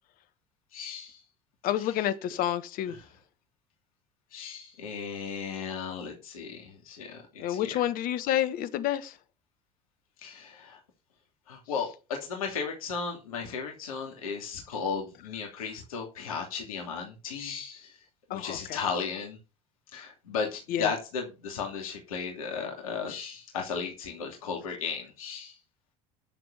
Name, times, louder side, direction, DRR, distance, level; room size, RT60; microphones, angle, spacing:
voice 1, 0.7-1.2 1.8-2.1 2.9-3.0 4.3-7.8 10.2-10.8 11.5-17.9 18.3-19.4 19.9-25.5, left 5 dB, 75° left, 2.7 m, -35 dB
voice 2, 1.6-2.9 7.4-9.1 18.3-18.6 20.7-20.9, left 12 dB, 50° left, 1.4 m, -29 dB
10.0 x 6.8 x 5.6 m
figure-of-eight pair, 70°, 18 cm